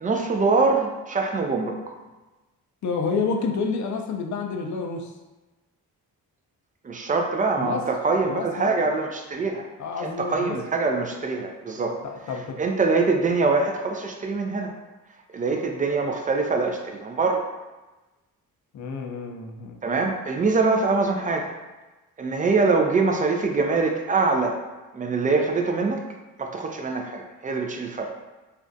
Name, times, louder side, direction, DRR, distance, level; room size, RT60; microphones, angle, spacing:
voice 1, 0.0-1.8 6.8-9.6 10.0-12.0 12.6-14.7 15.3-17.5 19.8-21.5 22.2-24.6 24.9-26.0 26.4-28.1, right 3 dB, 20° right, 3 dB, 0.3 m, -24 dB
voice 2, 2.8-5.1 7.6-7.9 8.3-8.9 9.8-10.6 11.8-12.6 18.7-19.8, left 4 dB, 45° left, 3 dB, 0.5 m, -29 dB
2.5 x 2.0 x 2.6 m, 1.1 s
supercardioid pair, 45°, 43 cm